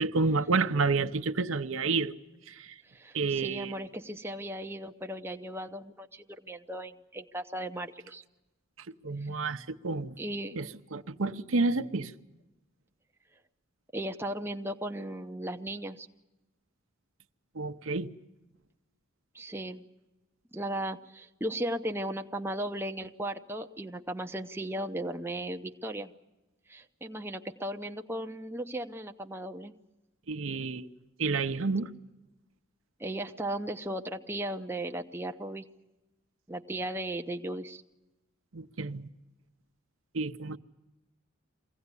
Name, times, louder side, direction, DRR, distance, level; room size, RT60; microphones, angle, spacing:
voice 1, 0.0-2.1 2.5-2.8 3.1-3.7 8.8-10.2 10.6-12.1 17.5-18.1 30.3-30.9 31.2-31.9 38.5-39.1 40.1-40.6, right 3 dB, 70° right, 0.8 m, -30 dB
voice 2, 2.8-8.2 9.2-9.3 10.2-10.6 13.9-16.1 19.3-19.8 20.5-26.1 26.7-29.7 33.0-35.7 36.5-37.8, right 1 dB, 10° right, 0.7 m, -36 dB
23.5 x 16.5 x 9.7 m
head